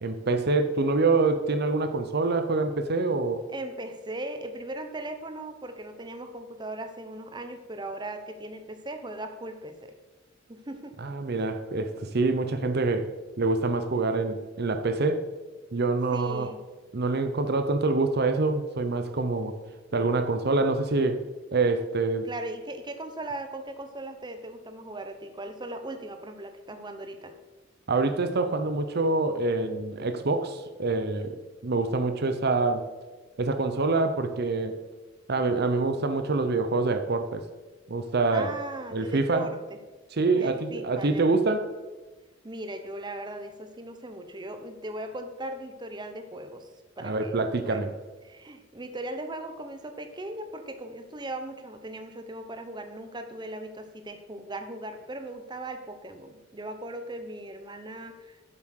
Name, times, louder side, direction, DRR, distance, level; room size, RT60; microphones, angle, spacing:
voice 1, 0.0-3.4 11.0-13.1 13.4-15.2 15.7-16.5 16.9-19.6 19.9-21.2 21.5-22.3 27.9-31.4 31.6-32.9 33.4-34.8 35.3-37.4 37.9-38.5 38.9-39.5 40.1-41.7 47.0-47.9, right 3 dB, 55° right, 8 dB, 0.7 m, -26 dB
voice 2, 3.5-9.9 10.5-11.0 16.1-16.6 22.2-27.3 38.3-39.8 40.3-41.3 42.4-46.7 47.0-48.0 48.2-58.4, right 1 dB, 20° right, 7 dB, 0.8 m, -38 dB
8.1 x 7.4 x 6.4 m, 1.2 s
head